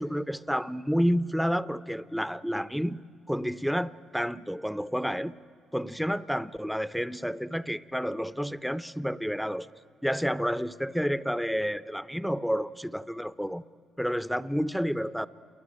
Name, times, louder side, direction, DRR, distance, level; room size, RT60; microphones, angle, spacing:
voice 1, 0.0-3.0 3.3-5.3 5.7-9.7 10.0-13.6 14.0-15.3, equal, ahead, 0.6 m, -30 dB
28.5 x 22.5 x 9.1 m
cardioid pair, 90°, 0 cm